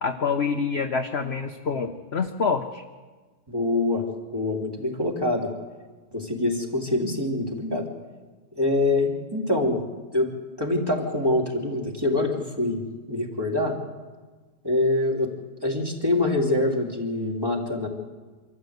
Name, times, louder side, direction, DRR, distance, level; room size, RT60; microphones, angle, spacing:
voice 1, 0.0-2.8, left 5 dB, 45° left, 5 dB, 1.0 m, -26 dB
voice 2, 3.5-4.0 4.3-5.5 6.1-7.9 8.5-9.8 10.1-10.3 10.6-12.8 13.1-13.8 14.6-15.3 15.6-17.9, left 2 dB, 15° right, -1 dB, 2.9 m, -25 dB
25.5 x 14.0 x 8.1 m, 1.4 s
omnidirectional pair, 1.8 m